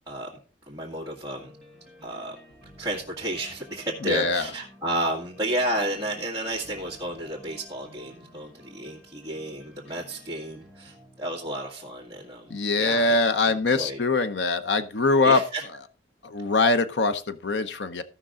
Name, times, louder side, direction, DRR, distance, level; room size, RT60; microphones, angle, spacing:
voice 1, 0.7-1.5 2.0-2.4 2.8-13.1 13.7-14.0 15.2-15.6, right 1 dB, 20° right, -5 dB, 1.9 m, -32 dB
sound 1, 1.4-14.3, left 1 dB, ahead, 2.1 m, -53 dB
voice 2, 4.0-4.4 12.5-15.4 16.2-18.0, left 3 dB, 80° left, 10 dB, 0.8 m, -23 dB
15.5 x 6.0 x 3.7 m, 0.36 s
head